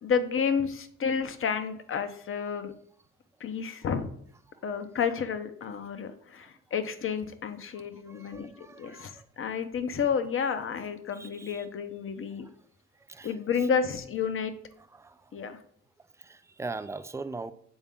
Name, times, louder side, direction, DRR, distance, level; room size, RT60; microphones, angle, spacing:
voice 1, 0.0-2.7 3.4-4.1 4.6-8.5 8.8-9.1 9.4-12.5 13.2-14.5 15.3-15.6, left 6 dB, 45° left, 0.7 m, -30 dB
voice 2, 7.7-9.3 11.1-11.7 12.4-12.6 12.9-13.7 14.8-15.4 16.0-17.5, right 3 dB, 10° right, 0.3 m, -42 dB
7.2 x 4.1 x 3.6 m
cardioid pair, 90°, 30 cm